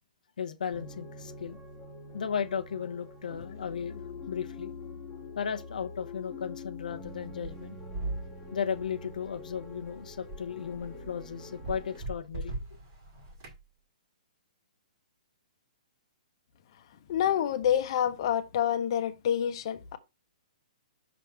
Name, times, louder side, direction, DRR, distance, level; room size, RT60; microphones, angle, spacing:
voice 1, 0.4-1.6 2.1-4.0 4.3-4.7 5.4-7.8 8.5-12.5, left 7 dB, 80° left, 0.6 m, -35 dB
sound 1, 0.7-12.0, left 3 dB, 5° left, 1.1 m, -45 dB
sound 2, 7.0-13.6, right 2 dB, 30° right, 1.8 m, -41 dB
voice 2, 17.1-20.0, left 9 dB, 35° left, 0.8 m, -27 dB
6.0 x 3.5 x 5.8 m
hypercardioid pair, 170°, 4 cm